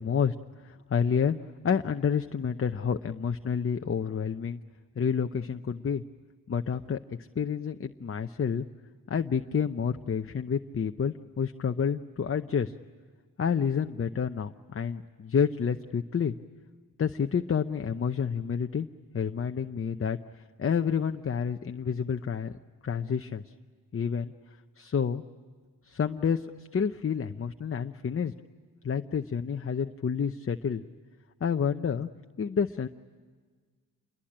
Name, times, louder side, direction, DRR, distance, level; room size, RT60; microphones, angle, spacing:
voice 1, 0.0-1.4 1.6-4.6 5.0-6.0 6.5-8.7 9.1-12.7 13.4-16.3 17.0-18.9 19.1-20.2 20.6-22.5 22.8-23.5 23.9-24.3 24.8-25.2 25.8-28.3 28.8-30.8 31.4-32.1 32.4-32.9, left 7 dB, 35° left, 7 dB, 0.7 m, -29 dB
28.0 x 22.0 x 8.8 m, 1.5 s
wide cardioid pair, 110°, 37 cm